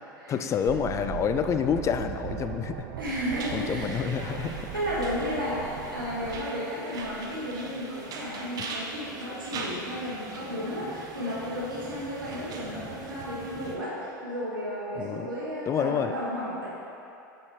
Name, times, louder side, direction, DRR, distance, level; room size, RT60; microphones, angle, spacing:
voice 1, 0.3-2.8 3.5-4.7 15.0-15.3 15.7-16.1, left 7 dB, 25° left, 9 dB, 0.4 m, -28 dB
sound 1, 0.7-6.4, right 11 dB, 55° right, 0.5 m, -38 dB
voice 2, 3.0-4.1 4.7-16.7, equal, 90° right, -9 dB, 1.5 m, -33 dB
sound 2, 3.3-13.8, right 3 dB, 35° right, 0.9 m, -41 dB
7.0 x 5.6 x 4.6 m, 2.9 s
figure-of-eight pair, 85°, 11 cm